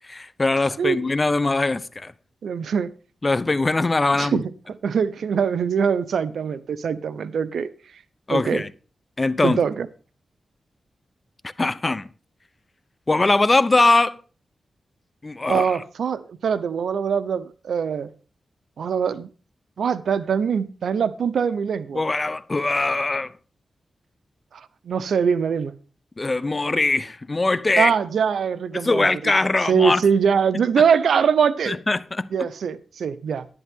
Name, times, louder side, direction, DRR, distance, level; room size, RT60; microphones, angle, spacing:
voice 1, 0.1-2.1 3.2-4.4 8.3-8.7 9.2-9.6 11.6-12.1 13.1-14.2 15.2-15.7 21.9-23.3 26.2-27.9 28.7-30.0 31.7-32.5, left 2 dB, 30° left, 0.8 m, -21 dB
voice 2, 2.4-2.9 4.1-4.4 4.8-7.7 8.3-8.6 9.4-9.9 15.5-18.1 18.8-19.3 19.8-22.0 24.8-25.8 27.8-29.3 29.7-31.8 32.3-33.5, right 6 dB, 85° right, 0.7 m, -22 dB
11.0 x 11.0 x 3.7 m
cardioid pair, 65°, 0 cm